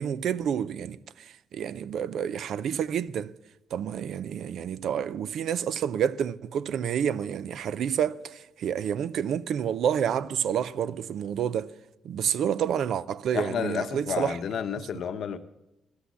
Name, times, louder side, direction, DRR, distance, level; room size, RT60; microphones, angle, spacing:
voice 1, 0.0-3.3 3.7-11.7 12.0-14.4, right 8 dB, 70° right, 0.5 m, -29 dB
voice 2, 13.3-15.4, left 7 dB, 65° left, 0.8 m, -31 dB
11.5 x 8.3 x 8.2 m
cardioid pair, 90°, 0 cm